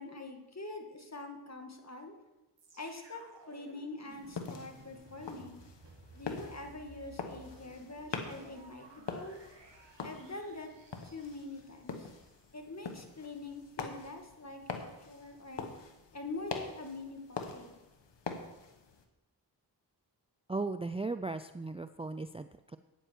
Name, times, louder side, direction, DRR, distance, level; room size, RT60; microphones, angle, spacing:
voice 1, 0.0-2.2 2.7-5.6 6.1-9.4 10.0-10.7 11.0-12.1 12.5-15.7 16.1-17.7, left 2 dB, 40° left, 4 dB, 2.1 m, -44 dB
sound 1, 2.6-12.6 13.2-13.3, right 2 dB, 85° right, 1.9 m, -57 dB
sound 2, 4.1-19.0, left 5 dB, 90° left, 1.2 m, -44 dB
voice 2, 20.5-22.8, right 3 dB, 15° right, 11 dB, 0.4 m, -37 dB
13.0 x 9.1 x 4.6 m, 1.0 s
cardioid pair, 40°, 42 cm